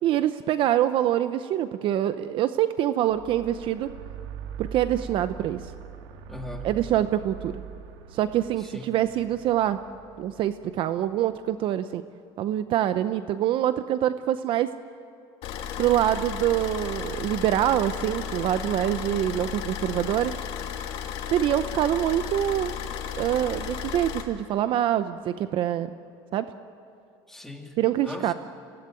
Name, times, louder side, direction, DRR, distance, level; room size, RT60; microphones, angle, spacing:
voice 1, 0.0-3.9 4.6-5.6 6.6-7.5 8.1-9.8 10.2-12.0 12.4-14.7 15.8-20.3 21.3-22.7 23.2-25.9 26.3-26.5 27.8-28.3, right 12 dB, 50° right, 11 dB, 0.8 m, -25 dB
sound 1, 3.1-11.4, right 7 dB, 90° right, 2.0 m, -42 dB
voice 2, 6.3-6.7 8.6-8.9 27.3-27.8 28.0-28.3, left 2 dB, 5° left, 1 dB, 2.7 m, -40 dB
Car / Idling, 15.4-24.2, left 8 dB, 55° left, 2.5 m, -34 dB
26.0 x 17.5 x 9.1 m, 2.7 s
cardioid pair, 140°, 11 cm